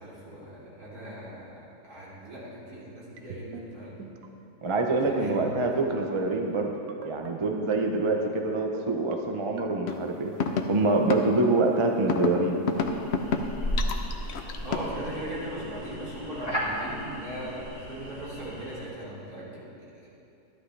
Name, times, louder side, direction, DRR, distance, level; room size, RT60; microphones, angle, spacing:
voice 1, 0.0-1.5 1.8-4.0 4.9-5.4 5.8-5.9 14.6-19.6 20.0-20.1, right 1 dB, 60° right, -8 dB, 3.6 m, -39 dB
sound 1, 3.2-3.6 4.0-4.3 5.0-5.5 5.9-6.1 6.9-7.3 7.7-8.1 8.7-9.1 9.6-9.9, right 8 dB, 85° right, 1.3 m, -41 dB
voice 2, 4.6-6.7 7.0-10.3 10.7-12.6, right 3 dB, 35° right, 2 dB, 0.5 m, -25 dB
sound 2, 9.9-10.0 10.4-10.6 11.1-11.2 12.1-12.3 12.7-13.4 13.8-14.9, left 6 dB, 55° left, 0.7 m, -27 dB
sound 3, 12.8-18.9, equal, 15° left, 1.9 m, -35 dB
13.5 x 11.5 x 3.3 m, 2.7 s
omnidirectional pair, 1.8 m